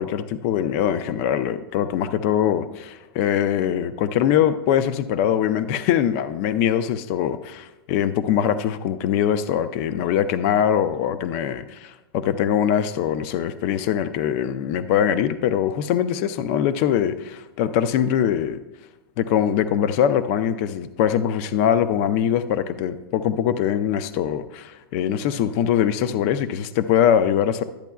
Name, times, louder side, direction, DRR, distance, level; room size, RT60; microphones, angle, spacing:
voice 1, 0.0-18.6 19.2-27.6, left 9 dB, 35° left, 12 dB, 0.4 m, -22 dB
12.0 x 8.2 x 2.3 m, 1.1 s
supercardioid pair, 155°, 13 cm